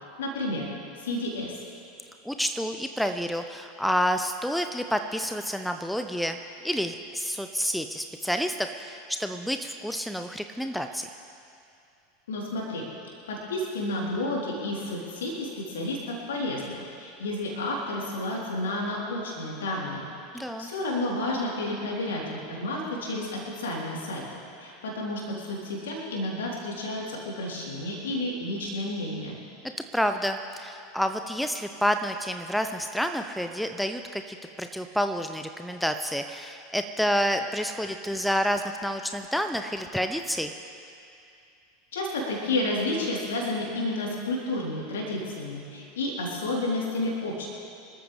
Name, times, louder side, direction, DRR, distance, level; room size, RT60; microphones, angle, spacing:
voice 1, 0.2-0.7 1.0-1.6 12.3-12.8 13.3-20.1 20.6-24.2 24.6-29.4 41.9-47.5, left 1 dB, 65° left, -3 dB, 3.5 m, -31 dB
voice 2, 2.2-6.4 6.6-11.1 20.3-20.7 29.9-40.5, equal, ahead, 7 dB, 0.6 m, -29 dB
25.5 x 13.5 x 3.4 m, 2.5 s
figure-of-eight pair, 80°, 0 cm